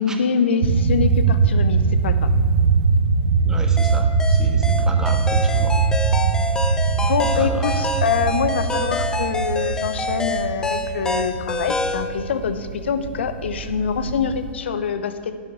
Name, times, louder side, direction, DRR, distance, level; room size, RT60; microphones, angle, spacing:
voice 1, 0.0-2.3 7.1-15.3, left 6 dB, 70° left, 10 dB, 0.9 m, -24 dB
sound 1, 0.6-14.5, right 5 dB, 60° right, 0.8 m, -21 dB
voice 2, 3.4-5.7 7.4-7.8, right 2 dB, 10° right, 4 dB, 1.4 m, -34 dB
sound 2, 3.8-12.1, left 1 dB, 10° left, 1.0 m, -26 dB
11.0 x 6.1 x 8.2 m, 2.2 s
hypercardioid pair, 110°, 6 cm